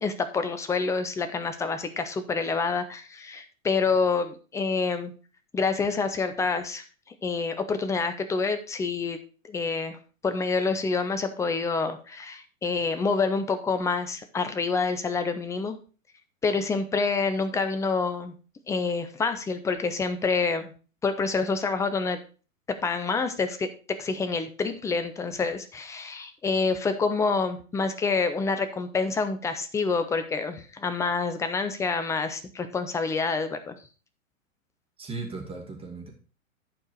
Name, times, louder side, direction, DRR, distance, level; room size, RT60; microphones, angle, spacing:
voice 1, 0.0-5.1 5.5-6.8 7.2-9.2 9.5-10.0 10.2-15.8 16.4-18.3 18.7-20.7 21.0-22.2 22.8-33.7, left 4 dB, 5° left, 9 dB, 0.6 m, -27 dB
voice 2, 35.0-36.1, right 3 dB, 15° right, 1 dB, 2.2 m, -37 dB
11.0 x 4.6 x 4.8 m, 0.37 s
figure-of-eight pair, 105°, 41 cm